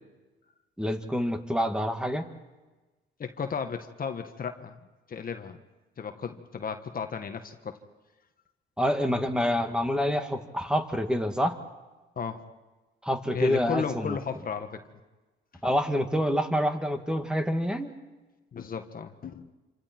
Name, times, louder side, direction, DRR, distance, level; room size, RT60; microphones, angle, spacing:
voice 1, 0.8-2.3 8.8-11.6 13.0-14.2 15.6-18.0, equal, 5° right, 5 dB, 2.1 m, -27 dB
voice 2, 3.2-4.8 5.1-5.6 6.0-7.8 12.1-12.4 13.3-14.8 18.5-19.5, left 6 dB, 45° left, 7 dB, 1.6 m, -34 dB
28.0 x 26.5 x 4.6 m, 1.2 s
cardioid pair, 90°, 20 cm